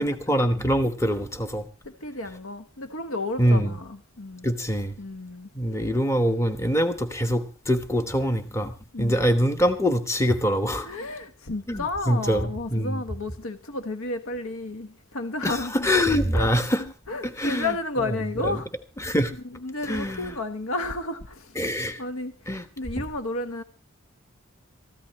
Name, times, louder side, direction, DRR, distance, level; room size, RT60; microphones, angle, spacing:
voice 1, 0.0-1.6 3.4-3.8 4.4-5.0 5.5-8.7 9.0-10.9 11.7-13.0 15.4-16.8 17.2-17.7 18.4-18.6 19.0-19.3 19.8-20.3 21.5-22.0 22.5-22.7 23.0-23.1, equal, 15° left, 1.1 m, -24 dB
voice 2, 1.8-4.5 5.0-6.0 8.9-9.2 10.8-15.9 16.3-16.5 16.8-18.7 19.5-21.6 22.0-23.6, left 2 dB, 80° left, 1.2 m, -32 dB
22.5 x 15.0 x 3.1 m
head